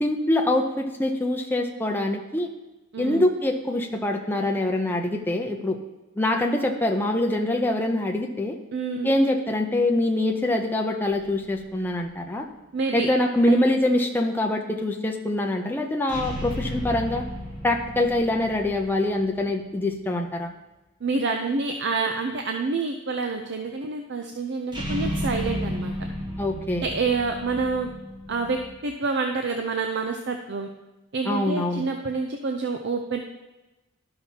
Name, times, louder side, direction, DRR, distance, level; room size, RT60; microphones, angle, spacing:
voice 1, 0.0-2.5 3.0-5.8 6.2-8.6 9.0-12.5 12.9-17.2 17.6-20.5 26.4-26.9 31.2-31.8, left 1 dB, 10° left, 2 dB, 0.6 m, -24 dB
voice 2, 2.9-3.3 8.7-9.2 12.7-13.1 21.0-25.9 26.8-27.9 28.3-30.7 31.1-33.2, right 4 dB, 55° right, 4 dB, 0.5 m, -27 dB
sound 1, 11.0-12.0 16.1-19.7 24.7-28.8, equal, 20° right, 1.0 m, -33 dB
12.5 x 5.8 x 2.8 m, 1.1 s
head